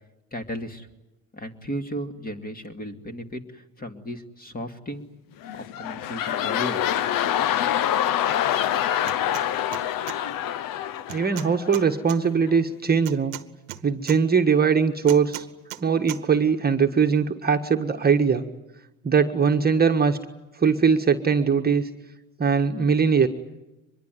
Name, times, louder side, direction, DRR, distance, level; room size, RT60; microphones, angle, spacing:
voice 1, 0.3-0.9 1.3-5.1 5.5-7.2, equal, 20° left, 6 dB, 2.6 m, -35 dB
sound 1, 5.4-12.0 12.5-12.6, left 11 dB, 55° left, 1.1 m, -26 dB
sound 2, 9.0-9.5 9.7-10.2 11.1-12.2 13.1-14.2 15.1-15.8 16.1-16.2, right 16 dB, 80° right, 1.2 m, -37 dB
voice 2, 11.1-13.3 13.8-15.5 15.8-18.4 19.0-20.2 20.6-21.8 22.4-23.3, right 6 dB, 25° right, 4 dB, 1.5 m, -21 dB
24.5 x 22.0 x 9.4 m, 1.0 s
hypercardioid pair, 70°, 40 cm